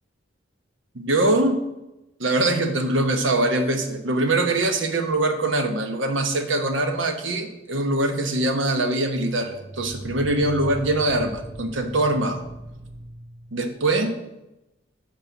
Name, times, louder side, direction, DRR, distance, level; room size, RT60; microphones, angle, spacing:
voice 1, 0.9-1.6 2.2-12.4 13.5-14.2, right 2 dB, 85° right, 6 dB, 1.1 m, -23 dB
sound 1, 9.4-13.9, right 1 dB, 15° right, 0.5 m, -39 dB
7.7 x 4.5 x 7.0 m, 0.94 s
head